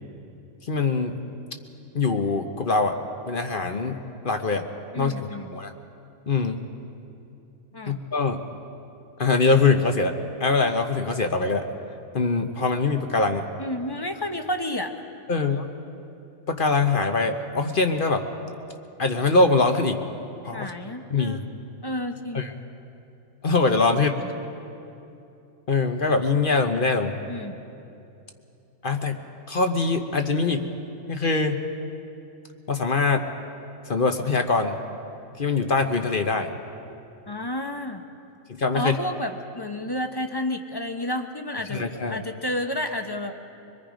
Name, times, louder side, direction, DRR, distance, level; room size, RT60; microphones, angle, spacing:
voice 1, 0.7-1.2 1.9-3.0 3.3-4.0 4.2-4.6 5.0-5.7 6.3-6.7 7.9-8.4 9.2-11.7 12.1-13.5 15.3-15.6 16.5-18.3 19.0-20.0 20.4-20.7 21.1-21.4 22.3-22.5 23.4-24.1 25.7-27.2 28.8-29.2 29.5-30.7 31.1-31.6 32.7-33.3 33.9-34.8 35.4-36.5 38.5-39.0 41.7-42.2, left 3 dB, 45° left, 6 dB, 1.0 m, -23 dB
voice 2, 4.9-5.5 7.7-8.0 13.6-14.9 20.5-21.5 21.8-22.5 23.9-24.3 27.3-27.6 37.3-38.0 38.7-43.3, left 1 dB, 20° left, 5 dB, 0.8 m, -31 dB
24.5 x 21.5 x 5.1 m, 2.7 s
omnidirectional pair, 1.4 m